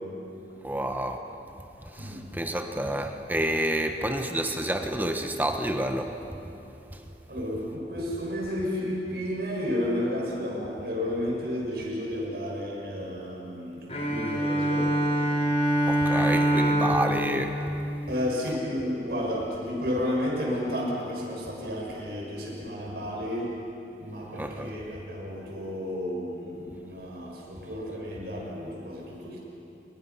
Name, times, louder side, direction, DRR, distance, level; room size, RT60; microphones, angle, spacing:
voice 1, 0.6-1.2 1.9-6.1 15.9-17.6 24.4-24.7, right 1 dB, 10° right, 5 dB, 1.2 m, -29 dB
voice 2, 7.3-14.9 18.1-23.5 24.0-29.4, left 1 dB, 65° right, -2 dB, 6.6 m, -32 dB
Bowed string instrument, 13.9-18.6, right 1 dB, 35° left, 3.9 m, -25 dB
28.0 x 22.5 x 5.9 m, 3.0 s
head